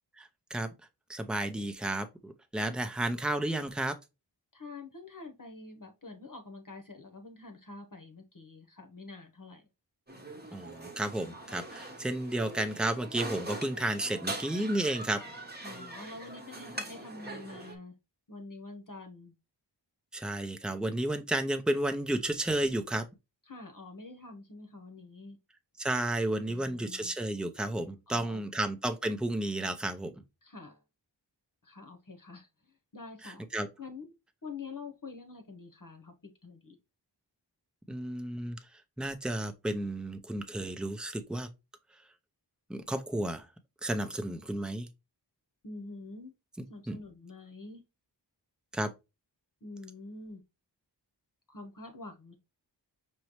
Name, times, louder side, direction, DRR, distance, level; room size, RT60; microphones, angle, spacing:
voice 1, 0.2-0.7 1.1-3.9 10.5-15.2 20.1-23.0 25.8-30.1 33.2-33.7 37.9-38.6 39.0-41.5 42.7-43.5 43.8-44.9 46.9-47.0 48.7-48.9, right 1 dB, ahead, 0.6 m, -32 dB
voice 2, 4.5-9.7 15.6-17.9 18.3-19.3 23.5-25.4 26.5-27.1 28.1-28.4 30.4-30.8 31.6-32.5 32.9-33.4 33.8-34.1 34.4-36.8 45.6-46.3 46.7-47.8 49.6-50.4 51.5-52.4, left 3 dB, 45° left, 1.0 m, -46 dB
sound 1, 10.1-17.8, right 2 dB, 20° right, 1.0 m, -42 dB
5.4 x 3.0 x 3.0 m
wide cardioid pair, 65°, 44 cm